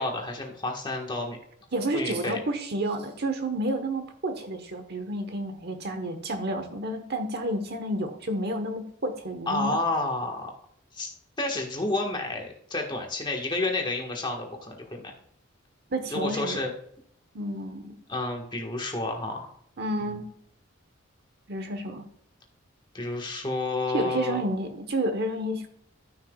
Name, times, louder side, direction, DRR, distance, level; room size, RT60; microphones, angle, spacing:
voice 1, 0.0-1.4 1.9-2.4 9.5-10.5 10.9-11.1 11.4-15.0 16.1-16.7 18.1-19.5 20.0-20.2 22.9-24.4, left 2 dB, 20° left, 1 dB, 1.5 m, -30 dB
voice 2, 1.7-9.8 15.9-16.6 17.3-18.0 19.8-20.3 21.5-22.0 23.9-25.7, right 1 dB, 50° right, 7 dB, 1.1 m, -30 dB
13.5 x 5.8 x 2.3 m, 0.65 s
head